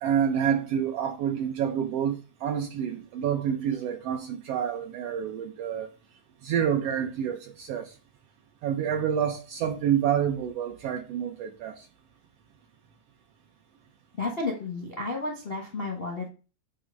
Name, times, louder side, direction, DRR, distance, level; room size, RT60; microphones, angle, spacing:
voice 1, 0.0-5.9 6.4-7.9 8.6-11.9, right 9 dB, 70° right, 1.5 m, -28 dB
voice 2, 14.2-16.3, left 3 dB, 40° left, 0.8 m, -32 dB
8.8 x 3.0 x 6.3 m
omnidirectional pair, 3.4 m